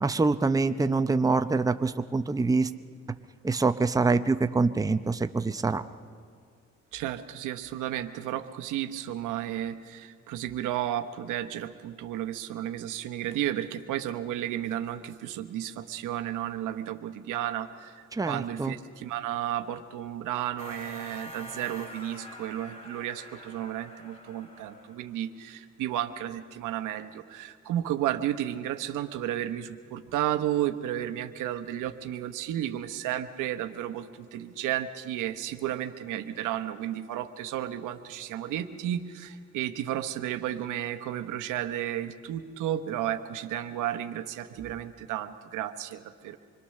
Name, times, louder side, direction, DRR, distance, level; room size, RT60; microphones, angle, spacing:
voice 1, 0.0-2.7 3.4-5.8 18.1-18.7, right 3 dB, 10° right, 9 dB, 0.7 m, -25 dB
voice 2, 6.9-18.0 18.3-34.1 34.3-46.4, right 12 dB, 90° right, 8 dB, 1.0 m, -33 dB
sound 1, 20.6-25.1, equal, 25° left, 4.8 m, -45 dB
26.0 x 21.5 x 6.5 m, 2.1 s
cardioid pair, 90°, 30 cm